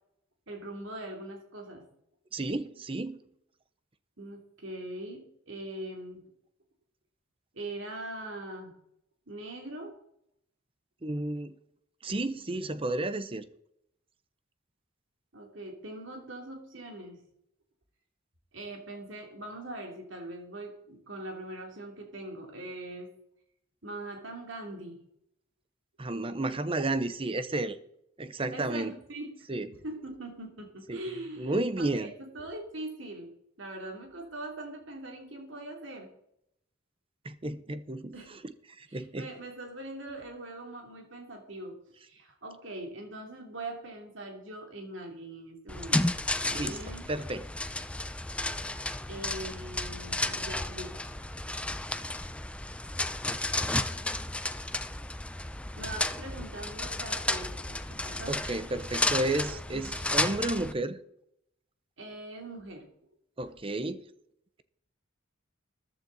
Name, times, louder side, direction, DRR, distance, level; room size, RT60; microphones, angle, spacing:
voice 1, 0.5-1.9 4.2-6.3 7.5-8.8 9.3-10.0 15.3-17.2 18.5-23.1 23.8-25.0 28.5-29.3 29.8-33.3 33.6-36.1 38.1-38.3 38.9-41.8 42.1-46.1 46.4-47.1 49.1-50.9 55.8-58.4 59.7-60.0 62.0-62.9, right 1 dB, 65° right, 3.1 m, -42 dB
voice 2, 2.3-3.2 11.0-11.5 12.0-13.4 26.0-27.8 28.2-29.0 29.5-29.7 30.9-31.0 31.4-32.1 37.2-38.4 38.8-39.3 46.5-46.8 47.1-47.5 58.3-61.0 63.4-64.0, right 2 dB, 25° right, 0.7 m, -32 dB
sound 1, 45.7-60.7, left 2 dB, 5° left, 0.5 m, -33 dB
14.0 x 12.0 x 4.1 m
head